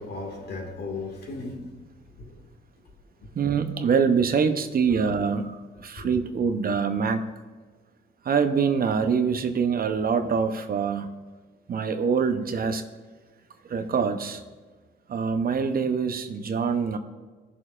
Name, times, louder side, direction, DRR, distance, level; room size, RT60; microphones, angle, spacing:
voice 1, 0.0-1.7 2.2-2.4 6.0-6.2, left 3 dB, 55° left, 2.0 m, -36 dB
voice 2, 3.3-7.3 8.2-11.1 11.7-12.8 13.6-14.4 15.1-17.0, right 6 dB, 50° right, 0.8 m, -24 dB
17.0 x 6.5 x 2.5 m
cardioid pair, 90°, 20 cm